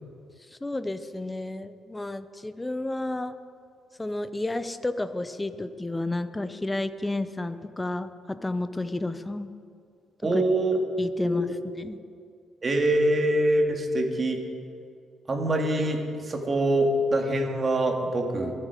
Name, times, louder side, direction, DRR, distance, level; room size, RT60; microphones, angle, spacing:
voice 1, 0.5-3.3 4.0-9.5 10.3-10.4 11.0-11.5 11.8-12.0, left 2 dB, 15° left, 11 dB, 0.7 m, -31 dB
voice 2, 10.2-10.8 11.2-11.4 12.6-14.4 15.3-18.5, right 1 dB, 35° right, 2 dB, 2.2 m, -24 dB
22.5 x 7.6 x 5.0 m, 2.3 s
cardioid pair, 90°, 0 cm